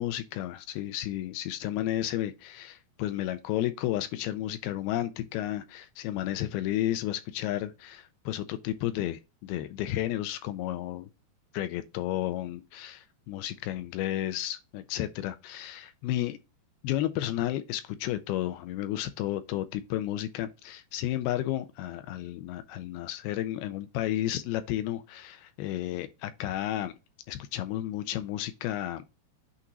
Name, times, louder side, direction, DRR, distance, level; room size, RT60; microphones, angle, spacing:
voice 1, 0.0-11.1 11.5-16.4 16.8-26.9 27.3-29.0, left 13 dB, 85° left, 2.3 m, -32 dB
8.4 x 2.9 x 3.9 m
omnidirectional pair, 4.9 m